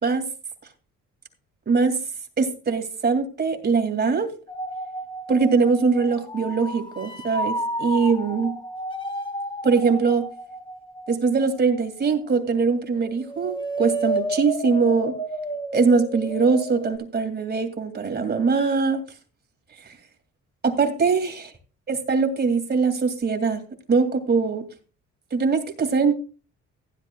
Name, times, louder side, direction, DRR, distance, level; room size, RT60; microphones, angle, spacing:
voice 1, 1.7-2.0 2.4-4.3 5.3-8.5 9.6-10.3 11.1-15.1 15.7-19.0 19.8-20.0 20.6-21.3 21.9-23.6 23.9-24.6 25.3-26.2, right 4 dB, 35° right, 6 dB, 2.4 m, -22 dB
sound 1, 4.5-12.7 13.0-17.0, right 1 dB, 15° left, 1.3 m, -32 dB
15.5 x 10.5 x 2.3 m, 0.35 s
cardioid pair, 90°, 30 cm